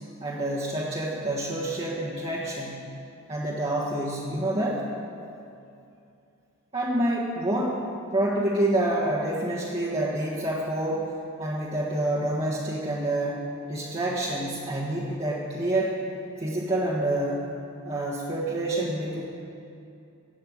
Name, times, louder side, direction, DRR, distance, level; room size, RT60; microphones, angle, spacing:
voice 1, 0.2-2.8 3.3-4.9 6.7-11.1 11.4-16.0 16.4-17.4 17.8-19.2, right 1 dB, 30° right, -7 dB, 1.4 m, -27 dB
15.5 x 5.5 x 8.9 m, 2.6 s
head